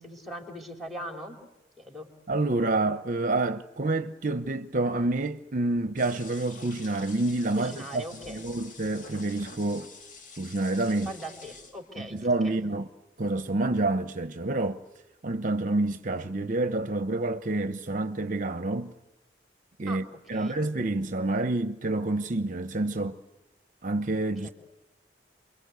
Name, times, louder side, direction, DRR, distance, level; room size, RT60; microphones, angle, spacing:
voice 1, 0.0-1.4 1.8-2.1 7.5-8.4 11.0-12.6 19.9-20.0 20.3-20.6 24.4-24.5, right 1 dB, ahead, 4.0 m, -40 dB
voice 2, 2.3-9.9 10.4-11.1 12.0-12.9 13.2-14.8 15.2-18.9 19.8-23.2 23.8-24.5, right 2 dB, 45° right, 0.9 m, -28 dB
sound 1, 6.0-12.1, left 3 dB, 45° left, 2.2 m, -48 dB
29.0 x 23.0 x 8.2 m
head